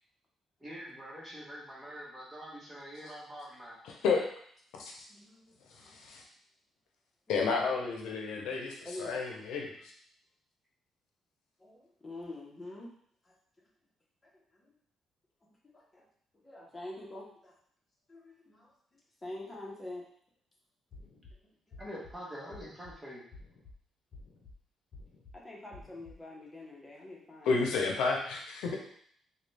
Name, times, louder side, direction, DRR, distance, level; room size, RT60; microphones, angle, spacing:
voice 1, 0.6-3.8 21.8-23.2, equal, 10° right, -5 dB, 1.3 m, -45 dB
voice 2, 3.8-4.3 4.8-4.9 5.8-6.2 7.3-9.7 27.4-28.8, left 4 dB, 90° left, 0 dB, 0.6 m, -31 dB
voice 3, 5.1-5.5 8.8-9.2 11.6-12.9 15.7-16.0 16.4-17.5 18.1-18.7 19.2-20.1 21.7-21.8 25.3-27.6, left 2 dB, 20° left, -3 dB, 1.0 m, -45 dB
sound 1, 20.9-21.3 21.7-22.1 22.5-22.9 23.3-23.7 24.1-24.5 24.9-25.3 25.7-26.1, left 2 dB, 55° left, 0.8 m, -51 dB
3.8 x 2.3 x 3.3 m, 0.62 s
cardioid pair, 90°, 0 cm